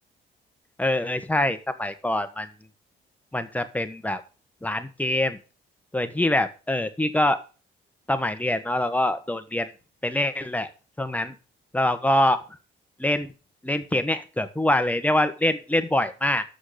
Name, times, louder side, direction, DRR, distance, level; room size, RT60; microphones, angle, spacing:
voice 1, 0.8-2.5 3.3-4.2 4.6-5.4 5.9-7.4 8.1-9.7 10.0-10.7 11.0-11.3 11.7-12.4 13.0-13.3 13.6-16.4, left 1 dB, 5° left, 9 dB, 1.3 m, -24 dB
6.7 x 6.3 x 7.5 m, 0.34 s
cardioid pair, 90°, 20 cm